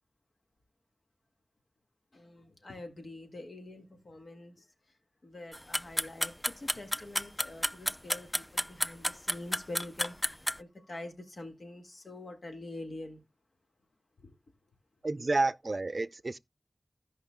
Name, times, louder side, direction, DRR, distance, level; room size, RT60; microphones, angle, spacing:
voice 1, 2.1-4.7 5.2-13.2 14.2-14.3, left 2 dB, 90° left, 1.7 m, -45 dB
sound 1, 5.5-10.6, equal, 15° left, 0.4 m, -30 dB
voice 2, 15.0-16.4, right 2 dB, 65° right, 0.4 m, -30 dB
16.0 x 5.6 x 2.2 m
wide cardioid pair, 50°, 0 cm